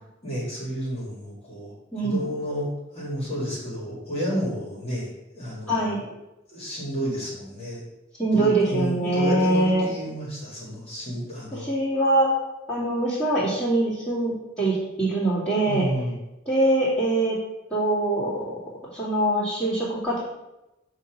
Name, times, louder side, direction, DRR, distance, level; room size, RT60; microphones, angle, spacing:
voice 1, 0.2-6.1 6.5-7.8 8.3-11.7 15.7-16.2, equal, 30° left, -5 dB, 2.0 m, -31 dB
voice 2, 5.7-6.0 8.2-9.9 11.6-12.3 12.7-15.8 16.5-17.4 17.7-18.6 18.9-20.2, right 2 dB, 10° left, -13 dB, 2.4 m, -23 dB
7.1 x 2.9 x 5.8 m, 0.96 s
head